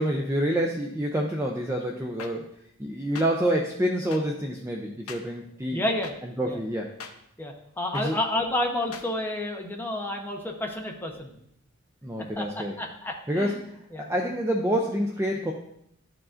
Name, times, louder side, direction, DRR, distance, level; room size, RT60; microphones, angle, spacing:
voice 1, 0.0-2.4 2.8-5.8 6.2-6.9 7.9-8.2 12.0-12.7 13.3-15.5, equal, 10° right, 1 dB, 0.4 m, -27 dB
sound 1, 2.2-2.3 3.2-3.3 4.1-4.2 5.1-5.2 6.0-6.1 7.0-7.1 7.9-8.1 8.9-9.1, left 5 dB, 75° left, 0.7 m, -39 dB
voice 2, 5.7-6.1 6.4-6.6 7.4-11.3 12.4-13.6 13.9-14.1, left 1 dB, 10° left, 1 dB, 0.8 m, -30 dB
12.0 x 4.8 x 2.5 m, 0.76 s
head